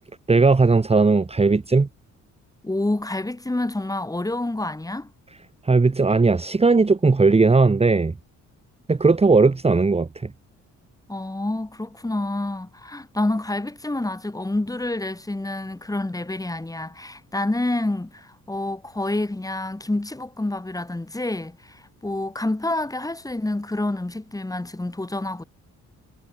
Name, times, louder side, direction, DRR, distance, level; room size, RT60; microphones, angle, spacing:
voice 1, 0.3-1.9 5.6-8.1 8.9-10.3, right 4 dB, 20° right, 1.5 m, -17 dB
voice 2, 2.6-5.1 11.1-25.4, left 2 dB, 10° left, 3.6 m, -28 dB
cardioid pair, 90°, 30 cm